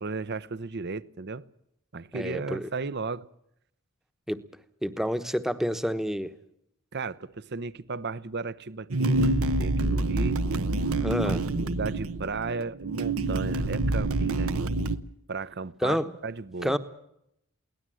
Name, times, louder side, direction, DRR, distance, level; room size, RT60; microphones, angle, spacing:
voice 1, 0.0-1.4 1.9-3.3 6.9-10.4 11.3-14.5 15.3-16.0 16.2-16.8, right 4 dB, 50° right, 0.8 m, -35 dB
voice 2, 2.1-2.7 4.3-4.4 4.8-6.3 11.0-11.4 15.8-16.1 16.6-16.8, equal, ahead, 1.0 m, -28 dB
sound 1, 8.9-15.0, right 2 dB, 75° right, 1.0 m, -27 dB
23.0 x 18.0 x 7.7 m
head